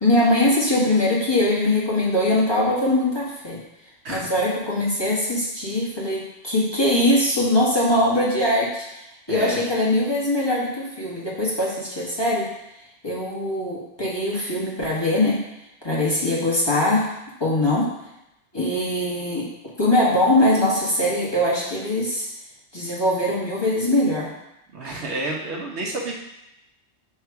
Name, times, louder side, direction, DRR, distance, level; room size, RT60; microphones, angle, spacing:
voice 1, 0.0-3.6 4.1-8.8 9.3-12.5 13.0-15.4 15.8-17.1 17.4-17.9 18.5-19.5 19.8-22.3 22.7-24.3, left 1 dB, 20° left, -6 dB, 1.4 m, -21 dB
voice 2, 9.3-9.6 24.7-26.1, right 2 dB, 70° right, -1 dB, 1.3 m, -29 dB
6.5 x 3.6 x 4.6 m, 0.89 s
omnidirectional pair, 1.2 m